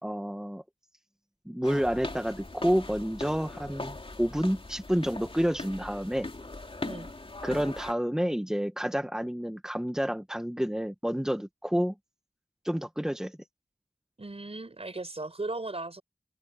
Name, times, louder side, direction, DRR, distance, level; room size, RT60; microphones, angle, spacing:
voice 1, 0.0-0.6 1.4-6.3 7.4-11.9 12.6-13.4, equal, 5° right, 1.5 m, -29 dB
sound 1, 1.6-7.9, left 2 dB, 50° left, 3.3 m, -40 dB
voice 2, 14.2-16.0, right 2 dB, 60° right, 5.0 m, -37 dB
wide cardioid pair, 45°, 12 cm